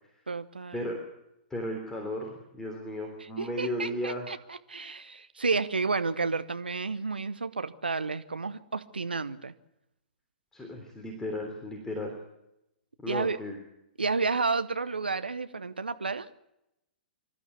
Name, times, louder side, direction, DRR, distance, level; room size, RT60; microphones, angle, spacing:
voice 1, 0.3-0.9 3.2-9.5 13.1-13.4 14.0-16.3, right 4 dB, 80° right, 0.9 m, -31 dB
voice 2, 1.5-4.3 10.5-12.2 13.0-13.6, left 1 dB, 10° left, 3.3 m, -35 dB
25.5 x 13.0 x 8.4 m
figure-of-eight pair, 110°, 5 cm